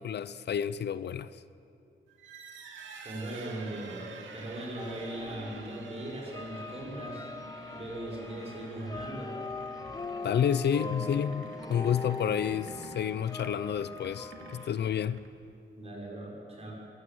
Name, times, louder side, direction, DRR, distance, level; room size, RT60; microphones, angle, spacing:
voice 1, 0.0-1.4 10.2-15.2, left 8 dB, 60° left, 0.6 m, -30 dB
sound 1, 2.1-15.5, right 4 dB, 85° right, 2.5 m, -49 dB
voice 2, 3.0-7.3 7.7-9.4 10.7-10.9 15.7-16.7, right 1 dB, 35° right, 6.5 m, -39 dB
sound 2, 4.8-14.7, left 3 dB, 20° left, 0.5 m, -42 dB
22.0 x 15.0 x 8.0 m
cardioid pair, 115°, 19 cm